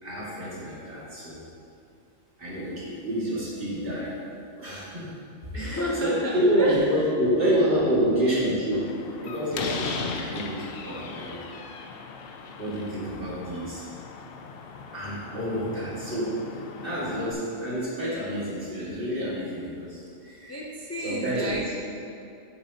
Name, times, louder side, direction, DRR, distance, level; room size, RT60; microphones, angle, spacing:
voice 1, 0.0-1.4 2.4-4.1 4.5-5.1 5.5-8.9 9.2-11.4 12.6-13.9 14.9-16.4 16.8-20.5 21.0-21.5, equal, 45° right, -8 dB, 2.3 m, -28 dB
voice 2, 5.6-7.0 7.4-8.0 20.4-21.7, equal, 20° left, -3 dB, 0.4 m, -32 dB
Slam, 8.7-17.3, left 4 dB, 60° left, 0.7 m, -38 dB
9.6 x 6.9 x 2.9 m, 2.6 s
omnidirectional pair, 1.3 m